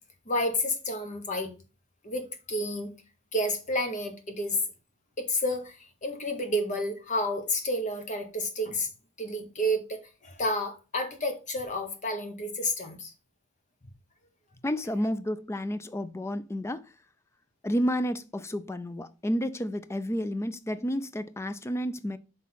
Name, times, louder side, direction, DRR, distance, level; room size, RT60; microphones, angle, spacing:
voice 1, 0.2-1.5 2.0-2.9 3.3-4.6 5.2-8.9 9.2-13.1, left 1 dB, 35° left, 1.2 m, -30 dB
voice 2, 14.6-16.9 17.6-22.2, equal, 10° left, 0.4 m, -31 dB
5.9 x 3.6 x 5.6 m
head